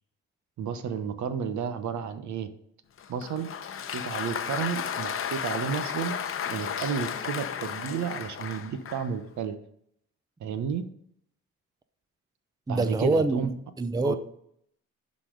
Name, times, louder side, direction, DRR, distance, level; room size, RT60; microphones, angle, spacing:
voice 1, 0.6-2.5 3.1-3.5 3.9-6.2 6.5-9.5 10.4-10.8 12.7-13.5 14.0-14.2, right 7 dB, 70° right, 1.0 m, -32 dB
Applause, 3.0-9.2, left 8 dB, 45° left, 0.8 m, -34 dB
voice 2, 12.7-14.2, right 2 dB, 15° right, 0.6 m, -26 dB
11.0 x 4.2 x 5.2 m
cardioid pair, 90°, 30 cm